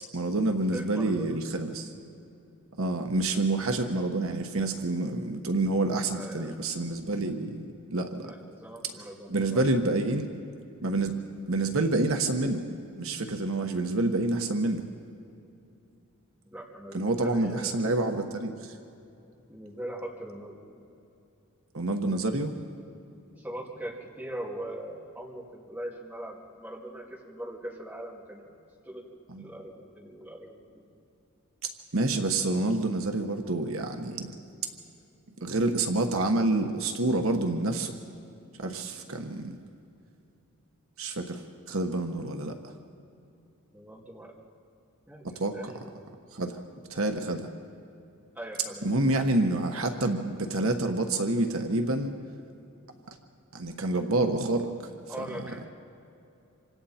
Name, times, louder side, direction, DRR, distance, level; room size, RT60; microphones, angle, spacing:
voice 1, 0.1-1.9 2.8-8.3 9.3-10.3 10.8-11.2 11.5-12.6 13.0-14.8 16.9-18.7 21.7-22.5 29.3-29.5 31.6-34.3 35.4-37.9 38.6-39.6 41.0-41.4 41.7-42.5 45.2-45.5 46.3-46.6 46.9-47.5 48.8-52.1 53.5-54.9 55.3-55.4, right 2 dB, 65° right, 5 dB, 1.2 m, -28 dB
voice 2, 0.7-1.4 6.1-6.6 8.2-9.6 16.5-17.8 19.5-20.9 23.3-28.5 28.8-29.0 29.4-30.8 43.7-44.4 45.1-46.1 48.3-48.9 55.1-55.7, right 1 dB, 5° right, -4 dB, 2.6 m, -41 dB
27.0 x 25.5 x 4.3 m, 2.7 s
head